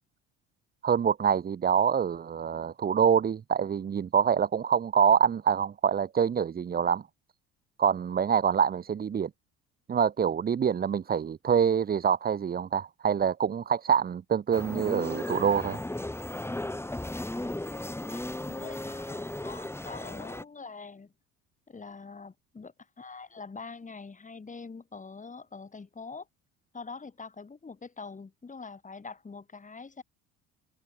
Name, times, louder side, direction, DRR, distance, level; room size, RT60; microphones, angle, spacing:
voice 1, 0.8-7.0 7.8-9.3 9.9-15.8, right 7 dB, 30° right, 0.9 m, -25 dB
sound 1, 14.5-20.4, left 1 dB, 10° left, 4.7 m, -36 dB
voice 2, 17.1-21.1 21.7-26.3 26.7-30.0, left 4 dB, 25° left, 4.3 m, -44 dB
supercardioid pair, 80°, 31 cm